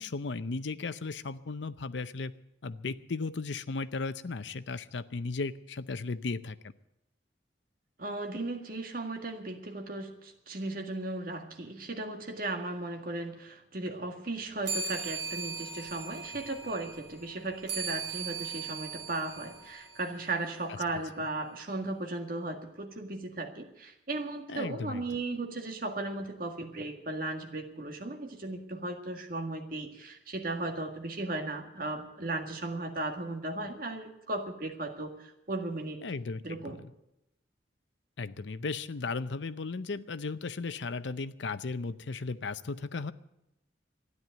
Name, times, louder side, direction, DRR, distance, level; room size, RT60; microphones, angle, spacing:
voice 1, 0.0-2.3 2.6-6.6 24.5-25.0 36.0-36.7 38.2-43.1, left 4 dB, 80° left, 13 dB, 0.6 m, -36 dB
voice 2, 8.0-36.0 36.4-36.8, right 2 dB, 50° right, 4 dB, 1.9 m, -36 dB
sound 1, 14.6-20.5, right 5 dB, 75° right, 4.3 m, -39 dB
13.0 x 10.5 x 9.2 m, 0.86 s
head